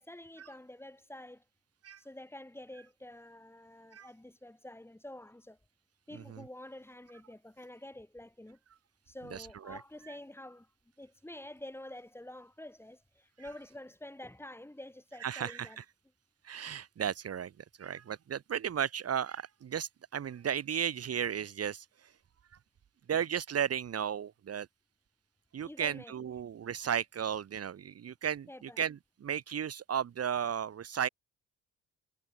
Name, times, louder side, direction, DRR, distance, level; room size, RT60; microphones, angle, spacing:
voice 1, 0.0-1.4 2.0-5.6 6.1-8.6 9.1-10.7 11.0-15.8 25.6-26.1 28.5-28.8, left 1 dB, 10° left, 4.3 m, -48 dB
voice 2, 9.3-9.8 15.2-15.8 16.4-17.5 17.8-21.8 23.1-24.7 25.5-31.1, right 8 dB, 55° right, 2.5 m, -34 dB
cardioid pair, 90°, 30 cm